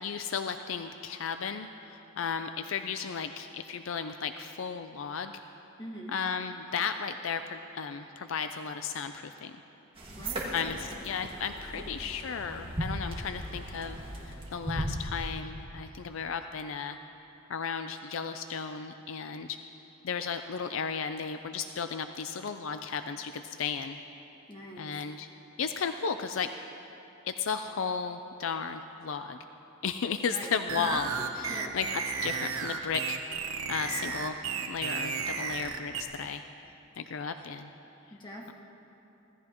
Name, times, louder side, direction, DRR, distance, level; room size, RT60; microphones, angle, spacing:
voice 1, 0.0-5.3 6.1-9.6 10.5-17.0 17.5-19.6 20.0-24.0 24.8-25.3 25.6-26.5 27.2-29.4 29.8-31.1 31.4-31.9 32.2-33.2 33.7-36.4 37.0-37.7, left 6 dB, 65° left, 8 dB, 0.5 m, -34 dB
voice 2, 5.8-6.1 10.1-11.1 11.7-11.9 24.5-25.0 30.2-31.0 31.5-31.7 38.1-38.5, equal, 20° left, -2 dB, 1.8 m, -43 dB
sound 1, 10.0-15.3, right 1 dB, 25° right, 1.8 m, -37 dB
sound 2, 30.7-36.0, right 6 dB, 80° right, 1.1 m, -33 dB
25.0 x 16.5 x 3.0 m, 3.0 s
head